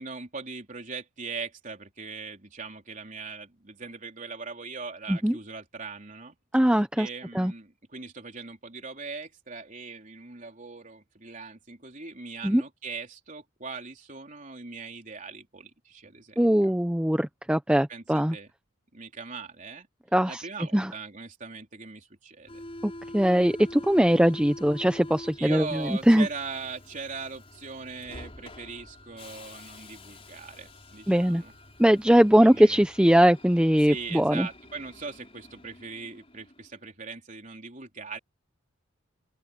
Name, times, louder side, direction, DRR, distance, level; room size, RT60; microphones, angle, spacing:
voice 1, 0.0-6.3 6.6-16.7 17.9-18.5 18.9-19.9 20.3-22.6 25.4-31.5 32.4-32.8 33.8-38.2, right 4 dB, 40° right, 3.9 m, -40 dB
voice 2, 6.5-7.1 7.3-7.5 12.4-12.6 16.4-18.4 20.1-20.4 20.7-20.9 22.8-26.3 31.1-31.4 31.8-34.5, equal, 5° right, 0.6 m, -21 dB
Subway metro underground, 22.5-36.8, left 1 dB, 30° left, 5.1 m, -46 dB
open air
head